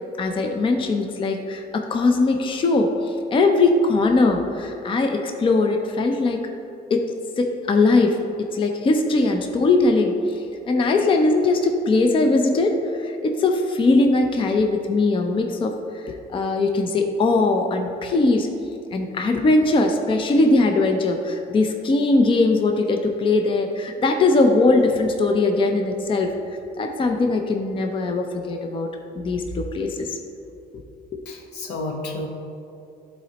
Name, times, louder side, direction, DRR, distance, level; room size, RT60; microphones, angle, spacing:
voice 1, 0.2-6.4 6.9-7.1 7.4-8.2 8.5-18.5 18.9-26.3 26.8-28.9 29.2-30.2 31.1-31.2, left 3 dB, 30° left, 4 dB, 0.5 m, -20 dB
voice 2, 31.2-32.3, left 2 dB, 80° left, 1 dB, 1.1 m, -31 dB
11.5 x 4.2 x 2.9 m, 2.8 s
cardioid pair, 110°, 17 cm